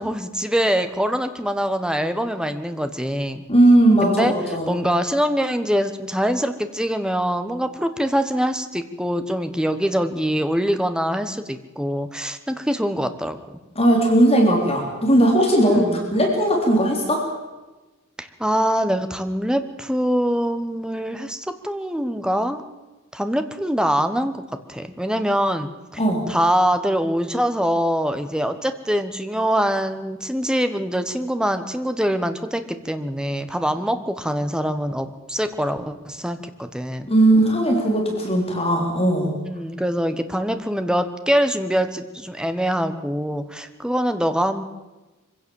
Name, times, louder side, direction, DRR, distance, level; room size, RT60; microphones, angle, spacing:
voice 1, 0.0-3.4 4.0-4.3 4.7-13.6 15.6-16.1 18.2-22.6 23.1-24.4 24.7-26.0 26.3-37.1 39.4-44.6, equal, 5° right, 9 dB, 1.2 m, -24 dB
voice 2, 3.5-4.7 13.8-17.2 26.0-26.3 37.1-39.4, right 1 dB, 30° left, 0 dB, 3.8 m, -18 dB
24.0 x 16.5 x 7.2 m, 1.2 s
head